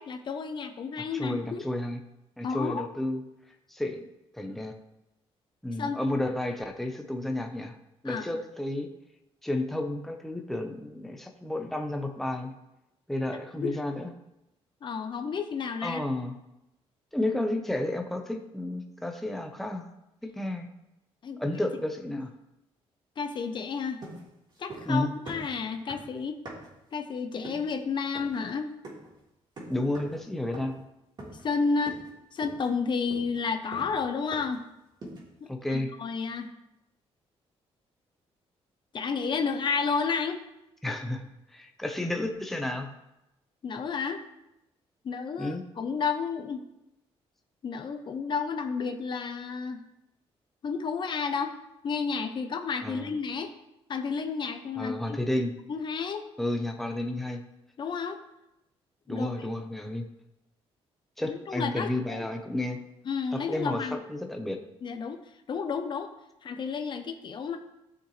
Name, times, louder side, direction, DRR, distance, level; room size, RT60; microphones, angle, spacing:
voice 1, 0.0-1.6 2.4-2.9 5.8-6.0 8.0-8.2 13.6-13.8 14.8-16.0 21.2-21.4 23.2-24.0 24.6-26.4 26.9-28.7 31.4-32.0 32.3-34.6 35.7-36.5 38.9-40.4 43.6-44.2 45.0-46.6 47.6-49.8 50.6-51.5 51.8-53.5 53.9-55.2 55.7-56.3 57.8-58.2 59.1-59.3 61.3-62.3 63.1-64.0 64.8-65.2 65.5-66.1 66.4-67.6, left 5 dB, 45° left, 6 dB, 0.8 m, -31 dB
voice 2, 1.1-2.0 2.4-3.2 3.7-4.0 4.3-4.7 5.6-7.8 8.0-8.9 9.4-12.5 13.1-14.1 15.8-16.3 17.1-19.8 20.2-20.7 21.4-22.3 24.9-25.1 29.7-30.8 35.5-35.9 40.8-42.9 45.4-45.6 52.8-53.2 54.8-55.5 56.4-57.4 59.1-60.1 61.2-62.8 63.3-64.6, left 1 dB, ahead, 3 dB, 0.9 m, -31 dB
sound 1, 24.0-25.0 25.3-26.8 27.4-27.7 28.2-28.4 28.8-29.2 29.6-30.2 30.5-30.9 31.2-31.6 31.9-32.1 32.4-34.7 35.0-35.4, right 1 dB, 45° right, 3.3 m, -44 dB
13.5 x 6.5 x 3.3 m, 0.89 s
cardioid pair, 120°, 11 cm